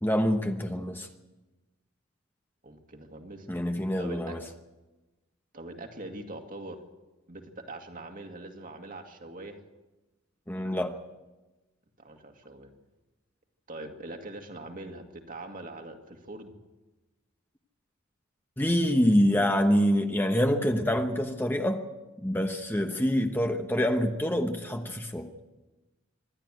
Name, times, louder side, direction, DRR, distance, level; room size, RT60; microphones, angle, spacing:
voice 1, 0.0-1.1 3.5-4.4 10.5-10.9 18.6-21.8 22.2-25.3, equal, 10° left, 5 dB, 1.0 m, -26 dB
voice 2, 2.6-3.5 4.0-4.4 5.5-6.8 7.3-9.6 12.0-12.7 13.7-16.5, right 2 dB, 45° right, 4 dB, 2.2 m, -42 dB
26.0 x 11.5 x 9.2 m, 1.1 s
head